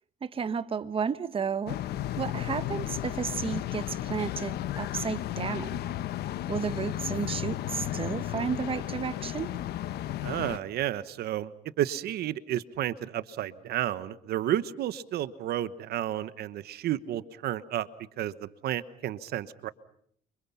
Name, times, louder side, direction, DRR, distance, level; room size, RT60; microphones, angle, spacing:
voice 1, 0.2-1.8 2.2-5.8 6.5-9.5, right 6 dB, 35° right, 1.2 m, -32 dB
sound 1, 1.7-10.6, left 13 dB, 70° left, 1.2 m, -34 dB
voice 2, 10.2-11.5 11.8-17.9 18.2-19.7, right 12 dB, 70° right, 1.1 m, -31 dB
30.0 x 26.0 x 5.7 m
cardioid pair, 110°, 17 cm